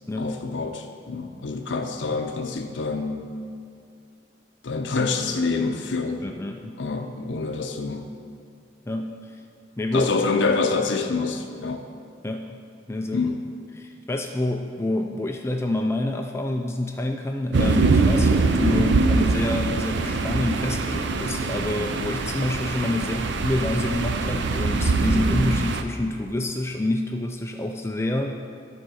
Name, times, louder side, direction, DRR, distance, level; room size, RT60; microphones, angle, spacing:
voice 1, 0.2-3.3 4.6-6.2 6.8-8.1 9.9-11.9 13.1-13.4, left 4 dB, 75° left, 5 dB, 0.6 m, -26 dB
voice 2, 6.2-6.8 8.9-9.4 9.8-10.1 12.2-12.6 12.9-13.3 13.7-28.3, left 1 dB, 15° left, 3 dB, 0.3 m, -27 dB
sound 1, 17.5-25.8, right 3 dB, 70° right, 0.5 m, -23 dB
13.0 x 4.3 x 6.2 m, 2.4 s
head